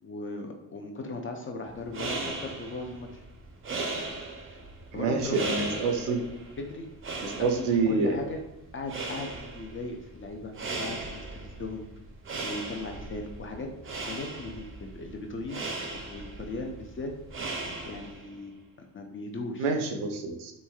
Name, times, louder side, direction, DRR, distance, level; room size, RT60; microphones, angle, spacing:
voice 1, 0.0-3.2 4.9-5.7 6.6-6.9 7.4-8.4 8.7-10.5 10.8-11.8 12.4-13.7 14.0-17.5 17.9-18.5 18.8-19.7, left 2 dB, 30° left, 3 dB, 0.4 m, -38 dB
Broom brushing on mat, 1.7-18.3, right 3 dB, 30° right, 0.5 m, -38 dB
voice 2, 4.9-6.3 7.2-8.2 19.6-20.5, right 4 dB, 80° right, 5 dB, 0.6 m, -27 dB
3.1 x 2.6 x 2.3 m, 0.89 s
supercardioid pair, 65°, 47 cm